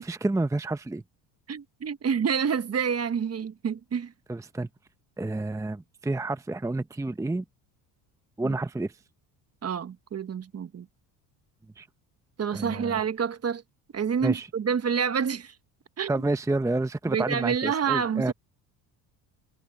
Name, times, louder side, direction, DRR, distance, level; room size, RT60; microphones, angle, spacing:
voice 1, 0.0-1.0 4.3-4.7 5.2-7.4 8.4-8.9 11.8-11.9 12.5-13.0 14.2-14.5 16.1-18.3, right 2 dB, 5° right, 0.8 m, -29 dB
voice 2, 1.5-4.1 8.4-8.6 9.6-10.9 12.4-13.6 13.9-15.5 16.0-16.1 17.1-18.3, right 7 dB, 35° right, 1.3 m, -28 dB
supercardioid pair, 85°, 44 cm